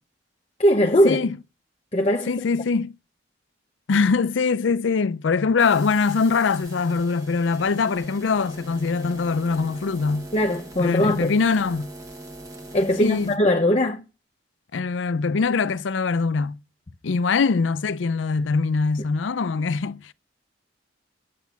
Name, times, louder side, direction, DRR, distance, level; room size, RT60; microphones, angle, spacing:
voice 1, 0.6-1.2 1.9-2.3 10.3-11.3 12.7-14.0, equal, 35° left, 0.8 m, -20 dB
voice 2, 2.3-2.9 3.9-10.3 10.8-11.9 13.0-13.3 14.7-16.6 17.0-20.1, left 4 dB, 85° left, 0.5 m, -22 dB
sound 1, 5.6-13.4, right 1 dB, 20° right, 1.3 m, -42 dB
10.5 x 8.4 x 7.0 m
head